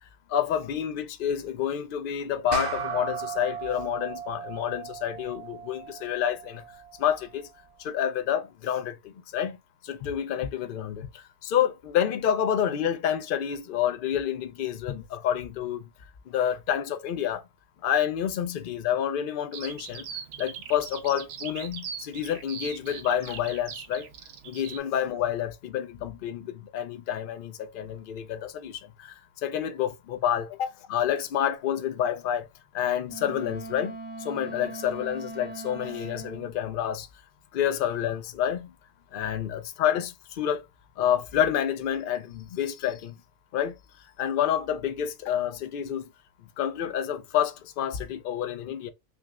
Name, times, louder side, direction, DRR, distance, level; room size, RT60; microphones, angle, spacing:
voice 1, 0.3-6.6 7.0-7.5 7.8-9.6 9.8-15.9 16.3-17.4 17.8-20.1 20.4-24.1 24.4-32.5 32.7-37.1 37.5-38.7 39.1-40.6 41.0-43.2 43.5-46.1 46.6-48.9, left 9 dB, 60° left, 0.6 m, -29 dB
sound 1, 2.5-7.3, right 7 dB, 60° right, 0.4 m, -37 dB
Bird vocalization bird call bird song, 19.5-24.8, right 7 dB, 90° right, 0.9 m, -41 dB
Wind instrument woodwind instrument, 33.1-36.5, right 3 dB, 10° right, 0.7 m, -40 dB
5.8 x 2.0 x 2.4 m
omnidirectional pair, 1.2 m